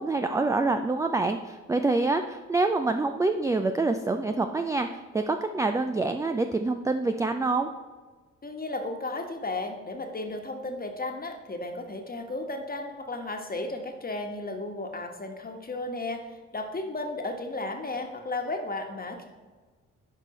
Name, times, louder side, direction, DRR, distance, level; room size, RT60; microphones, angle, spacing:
voice 1, 0.0-7.7, right 3 dB, 10° right, 7 dB, 0.4 m, -26 dB
voice 2, 8.4-16.3 16.5-19.3, left 2 dB, 25° left, 3 dB, 1.3 m, -34 dB
10.5 x 5.2 x 3.1 m, 1.4 s
hypercardioid pair, 40°, 36 cm